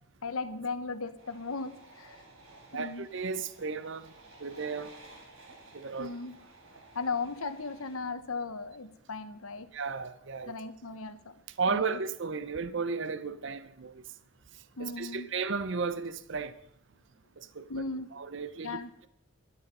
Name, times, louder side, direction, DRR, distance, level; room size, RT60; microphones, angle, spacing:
voice 1, 0.2-2.2 2.7-3.1 6.0-6.4 6.9-9.7 10.5-11.3 11.7-12.0 14.8-15.3 17.7-18.1 18.6-18.9, left 4 dB, 80° left, 1.1 m, -37 dB
sound 1, 1.2-8.0, right 2 dB, 75° right, 3.9 m, -54 dB
voice 2, 2.7-4.1 4.4-4.9 5.7-6.1 9.7-10.5 11.6-14.0 14.8-16.5 17.4-17.7 18.1-19.1, right 4 dB, 55° right, 0.6 m, -34 dB
12.5 x 12.0 x 5.4 m
head